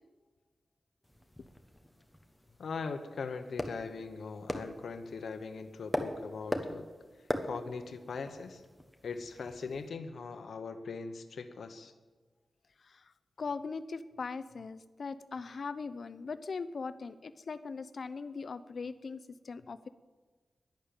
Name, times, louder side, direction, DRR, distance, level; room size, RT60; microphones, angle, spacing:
sound 1, 1.0-9.9, left 1 dB, 5° left, 1.2 m, -41 dB
voice 1, 2.6-6.9 7.4-8.6 9.0-11.9, left 4 dB, 85° left, 8 dB, 1.1 m, -40 dB
voice 2, 12.8-19.9, left 4 dB, 55° left, 14 dB, 0.7 m, -40 dB
11.5 x 11.0 x 9.0 m, 1.4 s
wide cardioid pair, 155°, 0 cm